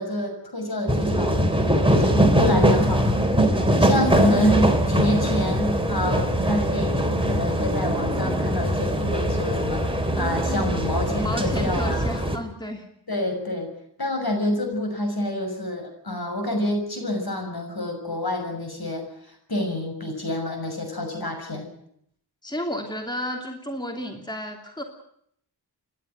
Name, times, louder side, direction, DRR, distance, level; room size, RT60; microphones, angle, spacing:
voice 1, 0.0-1.4 1.9-3.3 3.8-9.9 10.2-12.1 13.1-13.7 14.0-19.0 19.5-21.7, left 1 dB, 60° left, 4 dB, 6.6 m, -27 dB
sound 1, 0.9-12.4, equal, 10° right, 3.4 m, -22 dB
voice 2, 4.3-4.6 11.1-12.8 22.4-24.8, equal, 10° left, 3 dB, 2.9 m, -32 dB
29.0 x 11.5 x 9.3 m, 0.70 s
wide cardioid pair, 50°, 42 cm